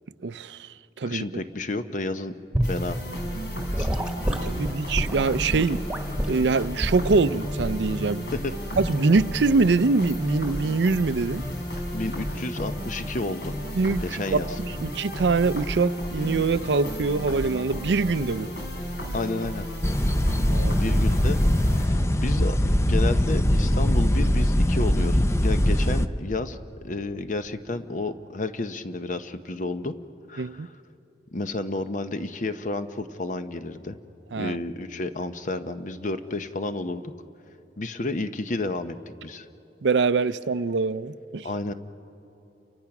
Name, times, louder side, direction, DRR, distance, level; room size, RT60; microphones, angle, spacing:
voice 1, 0.2-1.2 4.4-5.8 6.3-8.3 8.8-11.5 13.7-18.5 20.5-21.0 30.4-30.7 34.3-34.6 39.8-41.5, right 4 dB, 80° right, 0.5 m, -24 dB
voice 2, 1.0-2.3 2.6-3.0 3.8-3.9 8.4-8.5 11.9-13.5 14.0-14.5 19.1-19.7 20.8-21.4 21.7-26.6 26.8-29.9 30.3-30.7 31.3-34.0 34.4-37.0 37.8-38.9 39.2-39.5 41.4-41.7, left 2 dB, 45° left, 0.8 m, -31 dB
Gurgling / Sink (filling or washing) / Liquid, 2.5-2.8 3.7-6.4 6.8-7.1 7.6-7.8 8.8-9.0, equal, 5° right, 1.5 m, -28 dB
sound 1, 2.6-21.9, equal, 70° left, 4.3 m, -33 dB
sound 2, 19.8-26.1, left 1 dB, 15° left, 0.5 m, -21 dB
29.5 x 24.0 x 6.0 m
head